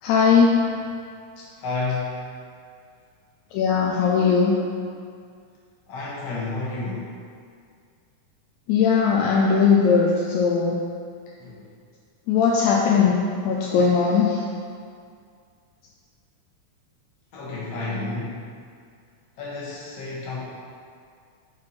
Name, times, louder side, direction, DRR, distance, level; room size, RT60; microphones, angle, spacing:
voice 1, 0.0-0.6 3.5-4.5 8.7-10.8 12.3-13.2 13.4-14.4, left 6 dB, 80° left, -3 dB, 1.8 m, -19 dB
voice 2, 1.6-2.3 5.9-7.1 11.4-11.6 17.3-18.5 19.4-20.4, left 3 dB, 60° left, -6 dB, 2.2 m, -30 dB
6.1 x 4.6 x 4.3 m, 2.2 s
omnidirectional pair, 3.6 m